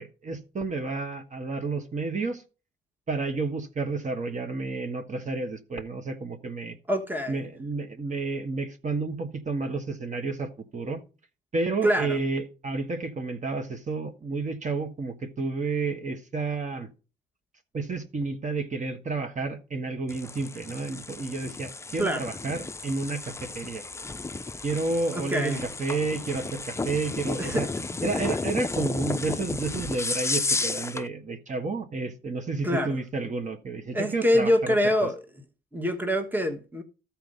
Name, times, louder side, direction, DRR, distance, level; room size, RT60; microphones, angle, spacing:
voice 1, 0.0-2.4 3.1-6.7 7.3-11.0 11.5-16.9 17.7-23.8 24.6-27.7 28.0-34.8 35.0-35.1, right 3 dB, 40° right, 1.4 m, -31 dB
voice 2, 6.9-7.4 11.8-12.2 22.0-22.2 25.1-25.7 27.4-27.8 32.6-33.0 33.9-35.2 35.7-36.8, equal, 10° right, 1.3 m, -25 dB
sound 1, 20.1-31.1, left 3 dB, 15° left, 0.5 m, -33 dB
13.0 x 4.5 x 5.4 m
cardioid pair, 90°, 20 cm